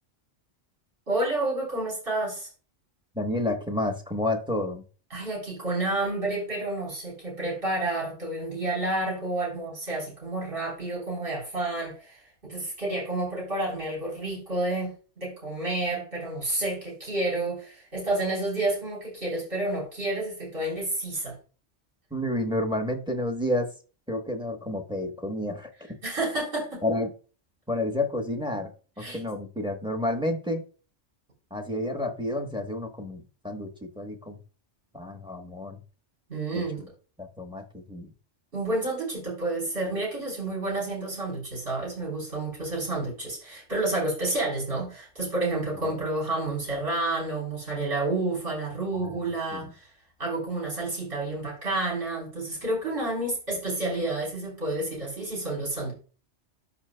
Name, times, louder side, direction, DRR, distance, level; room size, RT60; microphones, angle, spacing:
voice 1, 1.1-2.5 5.1-14.9 15.2-21.3 26.0-26.8 29.0-29.2 36.3-36.8 38.5-49.9 50.2-55.9, right 2 dB, 50° right, -5 dB, 4.3 m, -30 dB
voice 2, 3.1-4.8 22.1-23.7 24.1-25.7 26.8-27.1 27.7-28.7 29.0-30.6 31.5-34.4 34.9-35.8 36.5-36.9 37.2-38.1 48.9-49.2 49.5-49.7, left 1 dB, 5° right, 3 dB, 1.0 m, -30 dB
13.0 x 4.9 x 2.3 m, 0.36 s
omnidirectional pair, 1.2 m